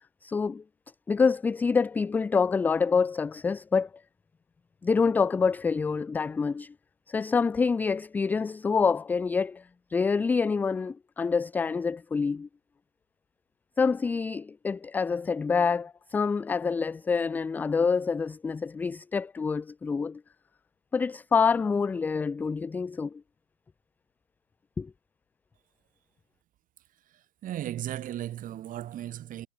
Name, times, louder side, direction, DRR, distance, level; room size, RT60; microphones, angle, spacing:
voice 1, 0.2-0.6 1.1-3.9 4.8-6.7 7.1-9.6 9.9-12.5 13.8-20.2 20.9-23.2 24.8-24.9, left 5 dB, 5° left, 0.7 m, -26 dB
voice 2, 27.4-29.5, right 12 dB, 20° right, 5.4 m, -35 dB
hypercardioid pair, 130°, 40 cm